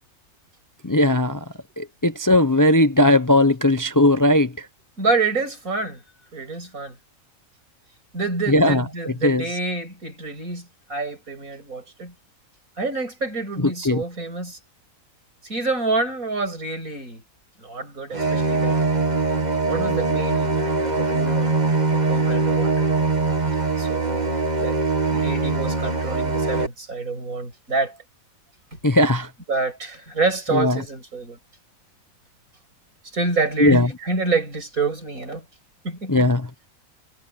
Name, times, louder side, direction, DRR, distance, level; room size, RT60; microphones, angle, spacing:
voice 1, 0.8-1.4 1.8-4.7 8.5-9.4 13.6-14.0 28.8-29.3 30.5-30.8 33.6-33.9 36.1-36.5, left 1 dB, 20° left, 0.6 m, -18 dB
voice 2, 5.0-6.0 6.3-6.9 8.1-12.1 12.8-14.6 15.4-17.2 17.6-18.8 19.7-21.6 21.9-22.9 23.8-24.3 24.6-24.8 25.1-28.0 28.7-28.8 29.5-31.4 33.1-35.4 35.8-36.3, right 3 dB, 80° right, 7.6 m, -27 dB
sound 1, 18.1-26.7, right 3 dB, 30° right, 1.9 m, -22 dB
omnidirectional pair, 1.4 m